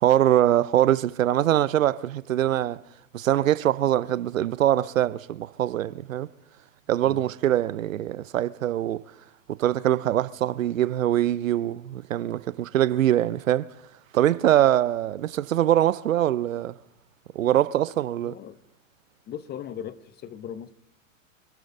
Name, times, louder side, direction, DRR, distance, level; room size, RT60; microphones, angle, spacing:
voice 1, 0.0-2.8 3.1-6.3 6.9-9.0 9.5-13.7 14.1-16.8 17.3-18.3, right 12 dB, 85° right, 0.7 m, -23 dB
voice 2, 18.2-18.6 19.3-20.7, left 9 dB, 25° left, 0.9 m, -38 dB
26.0 x 13.0 x 3.8 m
hypercardioid pair, 110°, 39 cm